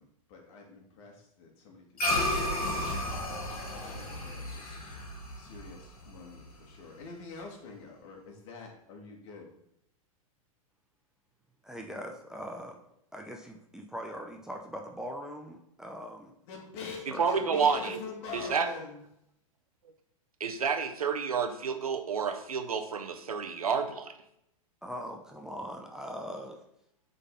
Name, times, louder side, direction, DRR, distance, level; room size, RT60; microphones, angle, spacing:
voice 1, 0.0-4.8 5.4-9.5 16.4-19.0, left 4 dB, 55° left, 0 dB, 2.0 m, -46 dB
sound 1, 2.0-6.6, left 1 dB, 80° left, 1.9 m, -33 dB
voice 2, 11.6-12.8 13.1-16.3 16.8-17.8 24.8-26.6, equal, 5° right, 1 dB, 0.6 m, -41 dB
voice 3, 17.2-18.0 18.3-18.7 20.4-24.1, right 6 dB, 90° right, 8 dB, 0.8 m, -29 dB
7.7 x 4.0 x 3.9 m, 0.77 s
hypercardioid pair, 110°, 18 cm